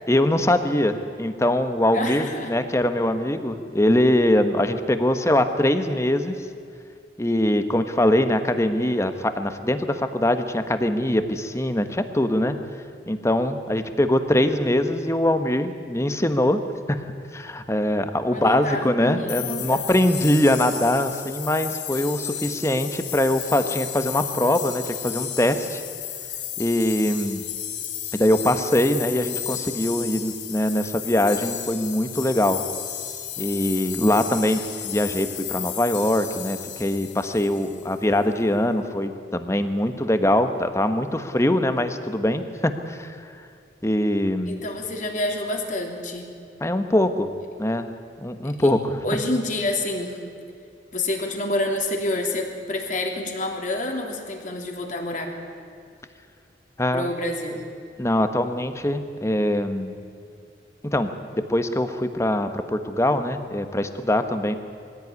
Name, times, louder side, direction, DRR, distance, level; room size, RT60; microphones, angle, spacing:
voice 1, 0.1-6.3 7.2-12.6 13.1-16.6 16.9-17.0 17.3-25.8 26.6-27.5 28.1-32.6 33.4-43.3 43.8-44.6 46.6-47.3 47.6-47.9 48.2-49.0 56.8-57.1 58.0-59.9 60.8-64.6, left 1 dB, 15° left, 9 dB, 1.2 m, -22 dB
voice 2, 1.9-2.5 18.3-19.8 44.4-46.2 48.6-48.7 49.0-50.2 50.9-55.4 56.9-57.7, left 1 dB, 45° left, 2 dB, 3.1 m, -28 dB
sound 1, 19.3-38.0, left 10 dB, 85° left, 2.7 m, -33 dB
22.0 x 16.0 x 9.6 m, 2.4 s
head